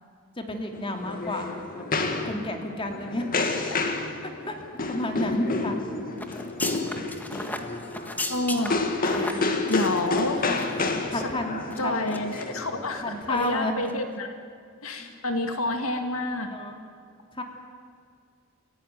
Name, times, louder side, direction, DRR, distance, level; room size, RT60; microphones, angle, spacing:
voice 1, 0.4-1.8 2.2-3.4 4.5-4.6 4.9-5.8 9.1-9.4 10.4-10.6 11.1-11.9 13.0-13.7 15.0-15.1 16.5-16.8 17.4-17.5, left 1 dB, 25° left, 3 dB, 2.8 m, -31 dB
sound 1, 0.7-13.2, left 3 dB, 45° left, 2.1 m, -30 dB
sound 2, 6.2-10.9 11.1-11.3 11.7-12.4 12.8-13.0 13.3-13.5 13.8-13.9, left 1 dB, 10° left, 1.6 m, -36 dB
voice 2, 8.3-8.8 9.7-10.4 11.1-11.3 11.8-14.3 14.8-16.5, left 2 dB, 75° left, 5 dB, 2.1 m, -29 dB
29.0 x 16.0 x 9.3 m, 2.2 s
head